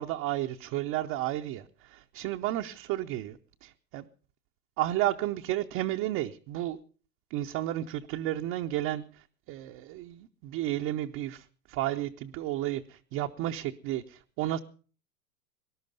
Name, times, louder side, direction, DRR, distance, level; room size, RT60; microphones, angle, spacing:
voice 1, 0.0-4.1 4.8-6.8 7.3-14.6, right 14 dB, 30° right, 4 dB, 0.6 m, -32 dB
19.5 x 11.5 x 5.3 m, 0.40 s
hypercardioid pair, 130°, 50 cm